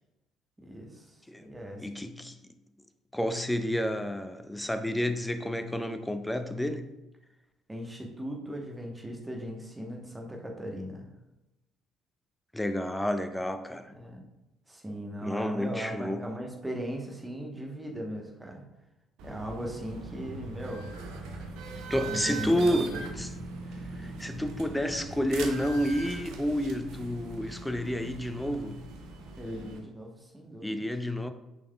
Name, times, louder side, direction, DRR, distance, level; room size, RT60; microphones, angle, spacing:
voice 1, 0.6-1.9 7.7-11.1 13.9-14.3 14.7-18.6 19.2-20.9 22.0-23.1 29.4-30.9, equal, 15° right, 1.0 m, -38 dB
voice 2, 1.8-2.5 3.1-6.9 12.5-13.9 15.2-16.3 21.9-23.3 24.0-28.8 30.6-31.3, equal, 5° left, 0.4 m, -30 dB
sound 1, 19.2-29.8, right 3 dB, 60° right, 0.7 m, -41 dB
5.9 x 4.0 x 2.3 m
figure-of-eight pair, 50°, 0 cm